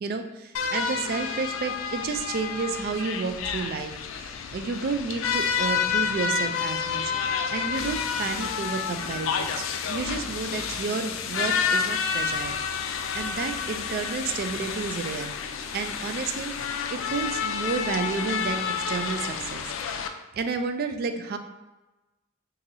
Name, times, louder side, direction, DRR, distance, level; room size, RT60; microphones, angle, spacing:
voice 1, 0.0-15.3 15.7-20.0 20.3-21.4, right 4 dB, 50° right, 7 dB, 0.3 m, -31 dB
sound 1, 0.5-20.1, left 6 dB, 75° left, 0.3 m, -29 dB
2.7 x 2.6 x 4.0 m, 1.1 s
head